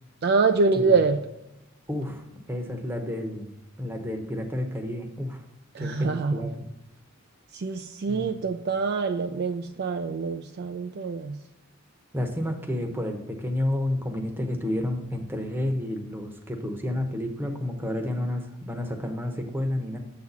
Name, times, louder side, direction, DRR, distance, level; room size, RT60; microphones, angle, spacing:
voice 1, 0.2-1.2 5.7-6.5 7.5-11.4, right 4 dB, 50° right, 7 dB, 0.3 m, -25 dB
voice 2, 1.9-3.5 3.8-5.4 5.8-6.7 8.1-8.4 12.1-20.0, left 1 dB, 10° right, 4 dB, 0.9 m, -30 dB
7.4 x 4.1 x 5.9 m, 0.92 s
head